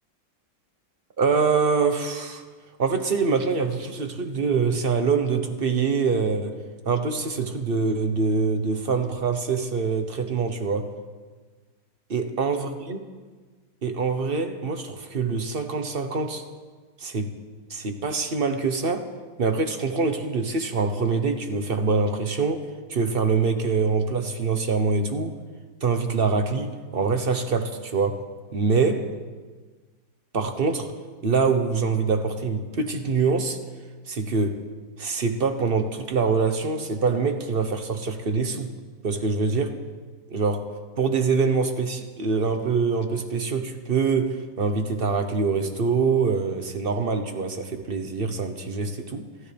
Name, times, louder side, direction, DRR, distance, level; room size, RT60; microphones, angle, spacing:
voice 1, 1.2-2.4 2.8-6.6 6.8-10.9 12.1-13.0 13.8-16.4 17.0-17.3 17.7-19.1 19.4-25.4 25.8-28.3 28.5-29.1 30.3-30.9 31.2-33.6 34.1-34.6 35.0-38.7 39.0-39.8 40.3-49.3, right 4 dB, 35° right, 7 dB, 1.1 m, -24 dB
28.5 x 13.0 x 3.5 m, 1.4 s
omnidirectional pair, 2.0 m